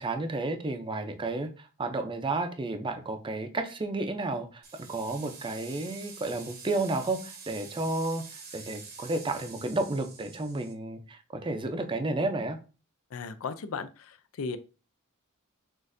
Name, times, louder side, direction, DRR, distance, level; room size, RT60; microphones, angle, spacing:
voice 1, 0.0-4.6 4.9-8.2 8.5-12.6, right 2 dB, 25° right, 6 dB, 0.5 m, -32 dB
sound 1, 4.6-10.7, right 5 dB, 50° right, 0.8 m, -47 dB
voice 2, 13.1-14.6, left 5 dB, 75° left, 12 dB, 0.4 m, -36 dB
6.2 x 2.5 x 2.6 m, 0.35 s
head